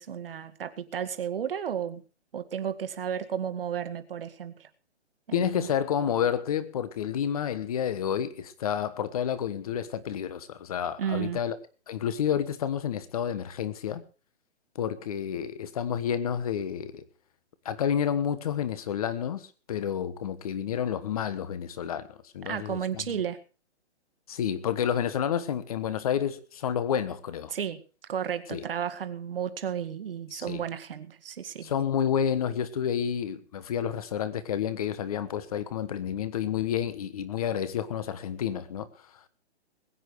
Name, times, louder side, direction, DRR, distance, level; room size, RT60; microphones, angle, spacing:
voice 1, 0.0-2.0 2.3-4.7 5.3-5.7 11.0-11.4 22.5-23.4 27.5-27.8 28.1-31.7, right 8 dB, 55° right, 1.9 m, -33 dB
voice 2, 5.3-11.6 11.9-14.0 14.7-17.0 17.6-23.2 24.3-27.5 28.5-28.6 30.3-30.6 31.6-38.9, left 9 dB, 35° left, 1.3 m, -30 dB
21.0 x 9.1 x 4.7 m
hypercardioid pair, 170°, 34 cm